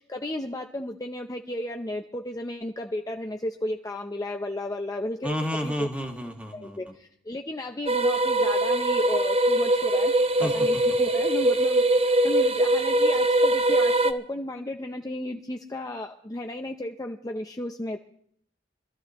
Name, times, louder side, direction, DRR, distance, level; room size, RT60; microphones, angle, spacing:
voice 1, 0.0-5.4 5.6-5.9 6.5-10.1 10.4-18.0, left 1 dB, 20° left, 3 dB, 0.6 m, -34 dB
voice 2, 5.2-6.8 10.4-10.5, equal, 5° right, 2 dB, 1.7 m, -30 dB
sound 1, 7.9-14.1, right 1 dB, 30° right, 0.8 m, -22 dB
24.5 x 13.5 x 3.0 m, 0.65 s
head